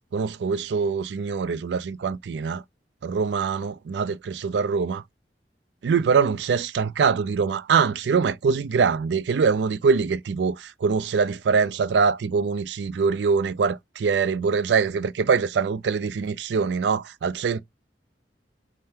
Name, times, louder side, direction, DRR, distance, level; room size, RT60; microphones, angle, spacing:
voice 1, 0.1-2.6 3.0-5.0 5.8-17.6, right 5 dB, 75° right, 0.4 m, -23 dB
3.7 x 3.2 x 2.7 m
head